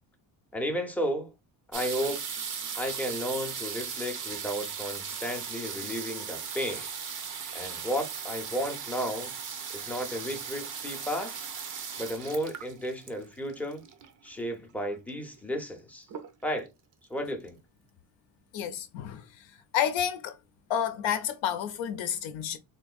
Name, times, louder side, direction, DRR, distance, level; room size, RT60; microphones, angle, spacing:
voice 1, 0.5-1.3 1.7-2.2 2.8-6.9 7.5-9.3 9.7-11.4 12.0-13.8 14.2-16.1 16.4-16.7 17.1-17.6, equal, 5° left, 0.5 m, -33 dB
sound 1, 1.7-14.3 15.1-15.2 15.4-15.8 16.1-16.7 17.2-17.3 17.5-17.6, right 6 dB, 45° right, 0.6 m, -38 dB
voice 2, 18.5-19.3 19.7-20.4 20.7-22.6, left 9 dB, 75° left, 0.6 m, -30 dB
3.8 x 2.5 x 2.3 m
cardioid pair, 150°, 47 cm